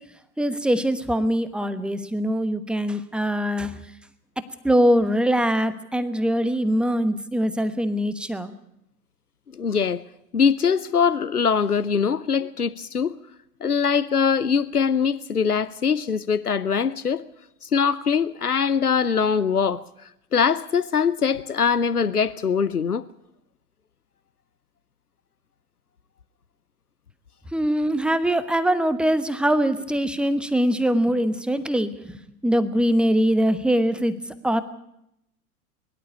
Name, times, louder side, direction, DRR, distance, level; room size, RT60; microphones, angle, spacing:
voice 1, 0.4-3.7 4.6-8.5 27.5-32.2 32.4-34.1 34.4-34.6, equal, ahead, 1.1 m, -22 dB
voice 2, 9.5-10.0 10.3-13.2 13.6-17.2 17.6-19.8 20.3-23.0, left 6 dB, 85° left, 0.8 m, -22 dB
22.0 x 12.0 x 10.0 m
figure-of-eight pair, 90°, 44 cm